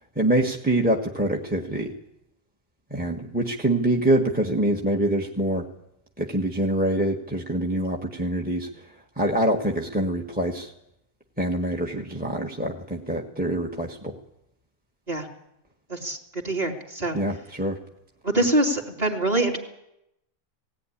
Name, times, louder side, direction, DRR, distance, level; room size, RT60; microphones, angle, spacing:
voice 1, 0.1-2.0 2.9-5.6 6.2-8.7 9.2-10.7 11.4-14.1 17.1-17.8, right 1 dB, 5° right, 2 dB, 1.3 m, -25 dB
voice 2, 15.9-17.2 18.2-19.6, right 1 dB, 25° right, 2 dB, 3.0 m, -24 dB
18.0 x 17.5 x 10.0 m, 0.85 s
omnidirectional pair, 1.5 m